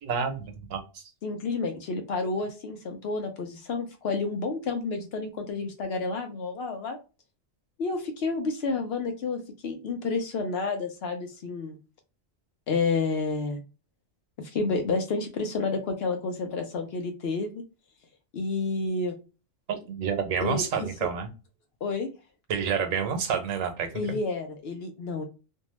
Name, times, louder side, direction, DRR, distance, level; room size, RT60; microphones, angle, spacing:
voice 1, 0.0-1.0 19.7-21.3 22.5-24.2, right 6 dB, 85° right, 6 dB, 1.1 m, -29 dB
voice 2, 1.2-7.0 7.8-11.8 12.7-13.6 14.4-17.6 18.3-19.1 20.4-21.1 21.8-22.1 23.9-25.2, left 3 dB, 60° left, 5 dB, 0.7 m, -30 dB
2.6 x 2.2 x 3.0 m, 0.31 s
omnidirectional pair, 1.3 m